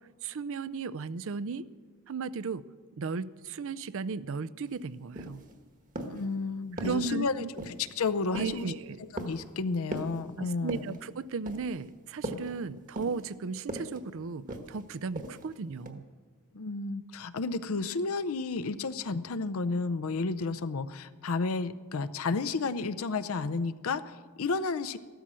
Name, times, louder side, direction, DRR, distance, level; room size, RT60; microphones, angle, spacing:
voice 1, 0.2-1.7 2.1-2.6 2.9-5.4 6.8-7.5 8.4-9.0 10.4-16.0, right 4 dB, 65° right, 17 dB, 0.5 m, -35 dB
sound 1, 4.7-4.8 5.1-5.5 6.0-6.3 6.8-7.1 7.6-7.9 8.3-8.7 9.2-9.5 9.9-10.2 10.7-11.0 11.5-11.8 12.2-12.5 13.0-13.3 13.7-14.0 14.5-14.8 15.2-15.5 15.9-16.0, right 1 dB, 35° right, 1.3 m, -39 dB
voice 2, 6.1-8.7 9.0-10.8 16.5-25.0, left 4 dB, 70° left, 11 dB, 0.6 m, -32 dB
14.5 x 13.0 x 6.2 m, 1.4 s
head